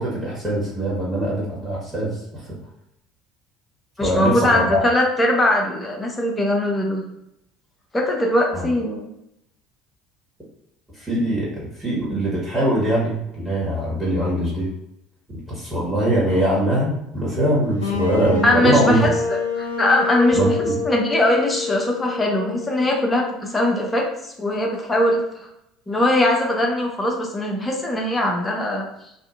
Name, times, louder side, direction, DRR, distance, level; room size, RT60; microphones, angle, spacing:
voice 1, 0.0-2.2 4.0-4.8 8.5-8.6 11.0-14.7 15.3-19.0 20.3-20.8, right 1 dB, ahead, -8 dB, 1.4 m, -22 dB
voice 2, 4.0-7.0 7.9-9.1 18.4-20.5 20.8-24.1 24.4-25.2 25.9-28.9, left 1 dB, 15° left, 0 dB, 0.7 m, -21 dB
sound 1, 17.8-23.7, left 2 dB, 90° left, 0.3 m, -27 dB
2.6 x 2.6 x 2.5 m, 0.81 s
figure-of-eight pair, 65°, 0 cm